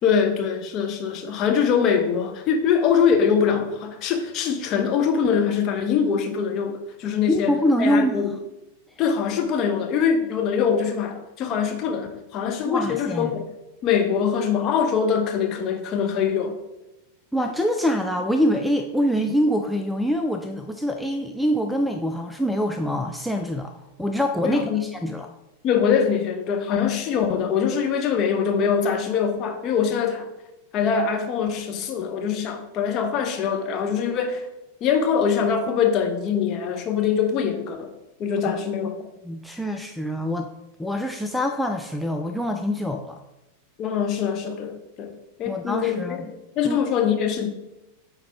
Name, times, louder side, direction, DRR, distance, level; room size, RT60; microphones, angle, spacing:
voice 1, 0.0-7.5 7.8-8.3 9.0-13.4 13.8-16.5 24.4-24.9 25.6-30.3 30.7-34.5 34.8-37.9 38.2-38.9 43.8-45.1 45.4-47.5, left 7 dB, 35° left, 4 dB, 0.8 m, -23 dB
voice 2, 7.3-8.4 12.6-13.4 17.3-25.3 38.8-38.9 39.2-40.5 40.8-43.2 45.4-46.3 46.6-46.8, equal, ahead, 3 dB, 0.4 m, -25 dB
9.1 x 3.6 x 3.4 m, 0.96 s
figure-of-eight pair, 90°, 0 cm